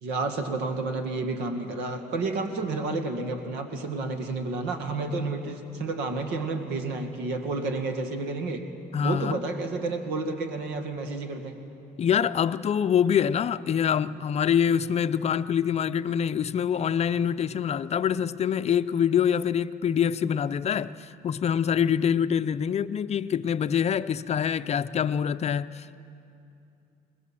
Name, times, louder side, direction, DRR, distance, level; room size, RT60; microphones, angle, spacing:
voice 1, 0.0-8.6 9.0-11.6, right 3 dB, 90° right, 2.0 m, -30 dB
voice 2, 8.9-9.4 12.0-25.9, left 8 dB, 40° left, 0.5 m, -25 dB
21.0 x 20.5 x 7.6 m
cardioid pair, 110°, 17 cm